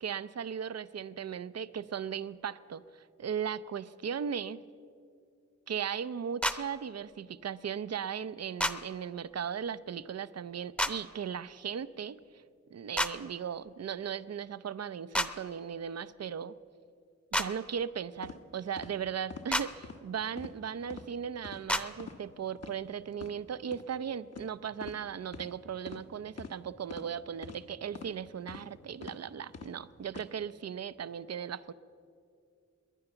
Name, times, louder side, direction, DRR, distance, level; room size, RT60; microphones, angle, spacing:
voice 1, 0.0-4.6 5.7-12.2 12.7-16.5 17.3-31.7, right 8 dB, 60° right, 16 dB, 0.6 m, -37 dB
sound 1, 6.4-6.6 8.6-8.7 10.8-10.9 13.0-13.1 15.1-15.3 17.3-17.5 19.5-19.7 21.7-21.8, equal, 5° left, 0.8 m, -28 dB
sound 2, 18.2-18.4 18.8-18.9 19.3-19.5 19.8-20.0 20.4-20.6 20.9-21.1 21.4-21.6 22.0-22.2 22.6-22.7 23.1-23.3 23.7-23.8 24.3-24.5 24.8-25.0 25.3-25.5 25.9-26.0 26.4-26.5 26.9-27.1 27.4-27.6 27.9-28.1 28.5-28.7 29.0-29.2 29.5-29.7 30.1-30.3, left 5 dB, 55° left, 1.1 m, -44 dB
21.0 x 9.7 x 7.0 m, 2.4 s
cardioid pair, 50°, 29 cm